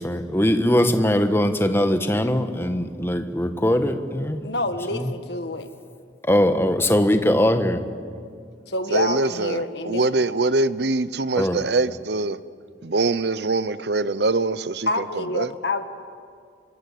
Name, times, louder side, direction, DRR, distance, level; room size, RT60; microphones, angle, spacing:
voice 1, 0.0-4.4 4.9-5.1 6.2-7.8 11.3-11.6, equal, 15° left, 1.4 m, -21 dB
voice 2, 4.4-5.7 8.7-10.3 14.9-15.8, left 2 dB, 65° left, 1.8 m, -27 dB
voice 3, 8.9-12.4 12.8-14.9 15.2-15.5, right 3 dB, 60° right, 0.8 m, -23 dB
28.5 x 25.0 x 8.5 m
head